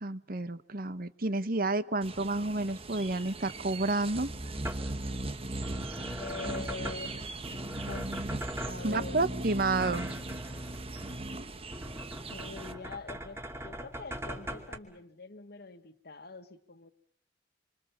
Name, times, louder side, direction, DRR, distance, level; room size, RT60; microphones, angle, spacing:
voice 1, 0.0-4.3 8.8-10.1, right 2 dB, 50° right, 14 dB, 1.1 m, -30 dB
sound 1, 2.0-12.7, right 2 dB, 30° right, 1.4 m, -39 dB
sound 2, 4.1-14.8, equal, 15° right, 2.6 m, -42 dB
voice 2, 6.2-7.1 7.8-8.1 8.6-9.5 12.3-16.9, left 4 dB, 55° left, 10 dB, 1.7 m, -44 dB
27.0 x 26.0 x 7.3 m, 0.62 s
head